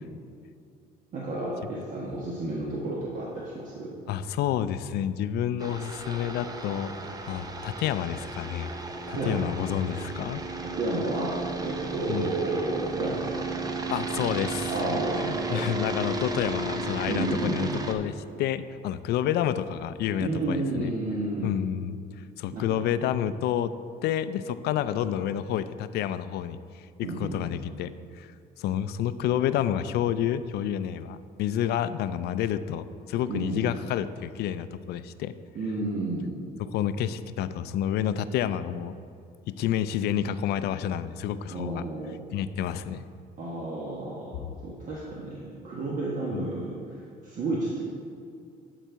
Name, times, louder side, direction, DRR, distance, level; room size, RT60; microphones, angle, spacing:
voice 1, 1.1-3.9 9.1-9.4 10.8-13.5 14.7-15.6 17.1-17.7 20.2-21.5 22.5-22.7 27.0-27.4 33.3-33.6 35.5-36.4 41.5-42.2 43.4-47.8, right 2 dB, 50° right, -5 dB, 1.3 m, -31 dB
voice 2, 4.1-6.9 7.3-8.7 9.1-10.4 12.1-12.3 13.9-15.0 15.3-20.9 21.4-22.0 22.4-23.7 24.0-27.9 28.2-28.3 28.6-35.3 36.6-39.0 39.4-41.8 42.3-43.1 46.3-46.5, left 10 dB, 75° left, 13 dB, 0.4 m, -29 dB
sound 1, 5.6-17.9, right 3 dB, 20° right, 0.7 m, -34 dB
12.0 x 4.0 x 4.6 m, 2.4 s
cardioid pair, 110°, 17 cm